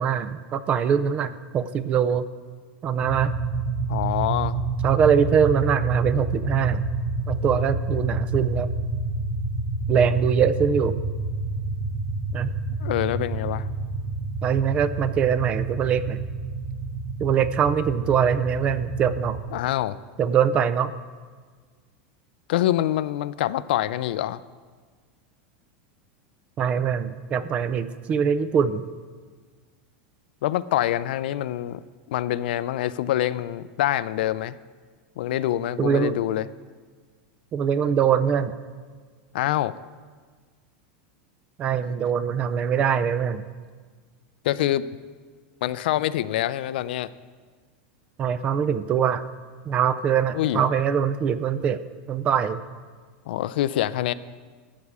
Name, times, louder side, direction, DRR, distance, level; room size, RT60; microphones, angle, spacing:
voice 1, 0.0-2.3 2.8-3.3 4.8-6.8 7.3-8.7 9.9-11.0 12.3-12.5 14.4-16.2 17.2-19.4 20.2-20.9 26.6-28.9 35.8-36.1 37.5-38.6 41.6-43.4 48.2-49.2 49.7-51.8 52.1-52.6, right 7 dB, 20° right, 14 dB, 0.3 m, -23 dB
sound 1, 3.0-19.4, right 3 dB, 55° right, 2.8 m, -28 dB
voice 2, 3.9-4.6 12.8-13.7 19.5-20.0 22.5-24.4 30.4-31.8 32.1-34.6 35.2-36.4 39.3-39.7 44.4-44.9 45.6-47.1 50.3-50.6 53.3-54.1, left 13 dB, 70° left, 16 dB, 0.4 m, -25 dB
13.5 x 8.3 x 4.8 m, 1.5 s
supercardioid pair, 175°, 6 cm